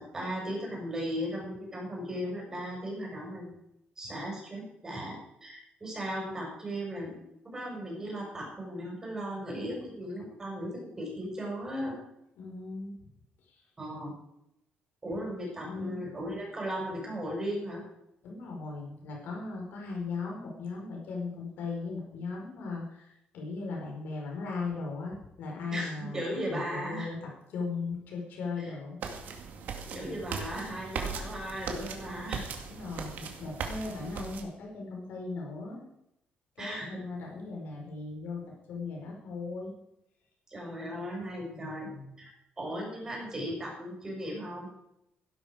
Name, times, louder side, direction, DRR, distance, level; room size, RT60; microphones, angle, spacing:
voice 1, 0.0-3.5 4.0-11.9 13.8-14.1 15.0-17.8 25.7-27.1 28.6-28.7 29.8-32.4 36.6-37.0 40.5-41.9 42.2-42.3 42.6-44.7, equal, 15° right, -2 dB, 6.0 m, -37 dB
voice 2, 12.4-12.9 13.5-13.6 15.7-16.0 18.2-26.2 26.5-29.0 29.9-30.2 32.6-35.8 36.5-39.7 41.5-42.1, left 4 dB, 70° left, -1 dB, 4.8 m, -38 dB
sound 1, 29.0-34.4, right 5 dB, 60° right, 2.2 m, -38 dB
16.5 x 11.5 x 5.0 m, 0.82 s
cardioid pair, 180°, 3 cm